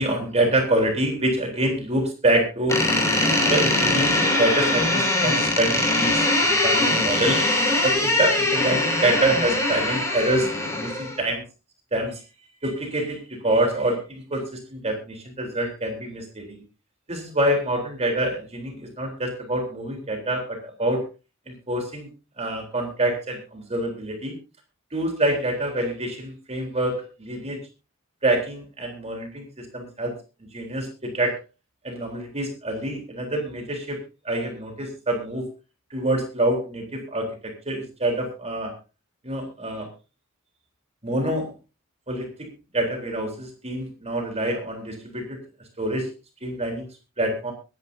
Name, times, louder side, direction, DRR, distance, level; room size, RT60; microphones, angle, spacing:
voice 1, 0.0-2.8 3.5-10.5 10.8-11.4 11.9-12.2 12.6-16.6 17.1-21.1 21.5-22.1 22.4-24.3 24.9-27.6 28.2-30.1 30.5-31.4 31.8-34.0 34.2-35.5 35.9-38.7 39.2-39.9 41.0-41.5 42.1-42.5 42.7-45.4 45.8-46.1 46.4-46.9 47.2-47.5, right 1 dB, 30° right, 2 dB, 3.7 m, -26 dB
Door, 2.7-11.2, left 2 dB, 15° left, 5.9 m, -22 dB
25.0 x 11.0 x 2.7 m, 0.31 s
head